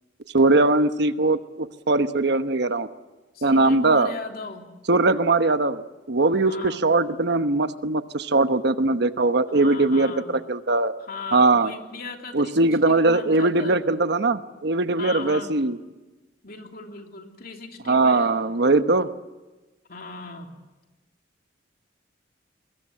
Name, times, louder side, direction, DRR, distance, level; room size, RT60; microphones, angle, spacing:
voice 1, 0.3-2.9 3.4-4.1 4.9-10.9 11.3-11.7 12.3-15.8 17.9-19.1, right 2 dB, 65° right, 10 dB, 1.1 m, -21 dB
voice 2, 3.3-4.6 6.4-6.8 9.5-10.4 11.0-13.9 14.9-15.6 16.4-18.4 19.9-20.5, left 4 dB, 55° left, 3 dB, 3.1 m, -38 dB
24.5 x 21.0 x 7.7 m, 1.2 s
head